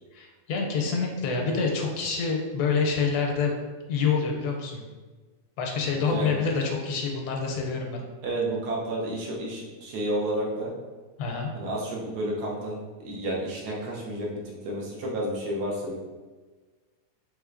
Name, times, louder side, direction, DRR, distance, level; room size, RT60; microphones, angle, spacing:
voice 1, 0.1-3.5 3.9-4.8 5.6-8.0 11.2-11.5, left 5 dB, 80° left, 1 dB, 1.1 m, -27 dB
voice 2, 8.2-10.7 11.5-12.8 13.0-15.9, right 1 dB, 85° right, -3 dB, 1.3 m, -31 dB
3.4 x 3.2 x 2.5 m, 1.3 s
omnidirectional pair, 1.7 m